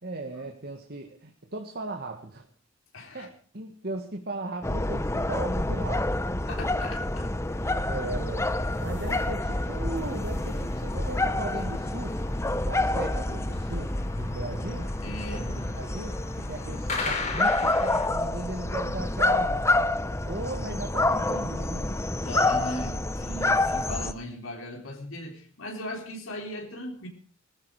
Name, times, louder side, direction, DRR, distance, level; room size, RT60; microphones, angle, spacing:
voice 1, 0.0-2.5 3.1-6.2 7.9-12.2 12.6-14.9 15.3-19.7 20.2-22.0, right 2 dB, 50° right, 4 dB, 1.9 m, -37 dB
voice 2, 2.9-3.3 6.5-7.3 9.1-9.2 15.0-15.5 22.2-27.1, left 1 dB, 80° left, 1 dB, 3.9 m, -38 dB
sound 1, 4.6-24.1, left 2 dB, 15° left, 0.8 m, -28 dB
sound 2, 7.5-18.1, left 3 dB, 35° left, 4.2 m, -39 dB
20.0 x 14.5 x 4.9 m, 0.42 s
head